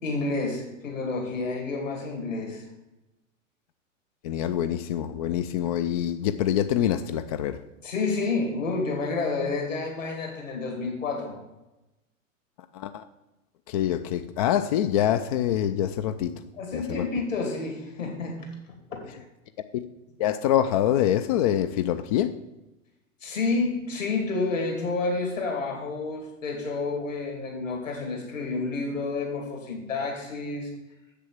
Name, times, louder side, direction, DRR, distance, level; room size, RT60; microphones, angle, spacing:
voice 1, 0.0-2.6 7.8-11.4 16.6-18.5 19.0-19.2 23.2-30.7, left 3 dB, 75° left, 1 dB, 2.7 m, -29 dB
voice 2, 4.2-7.6 12.7-13.0 13.7-16.4 16.7-17.1 19.7-19.8 20.2-22.3, left 11 dB, 30° left, 10 dB, 0.4 m, -25 dB
7.7 x 6.7 x 7.5 m, 0.98 s
figure-of-eight pair, 95°, 39 cm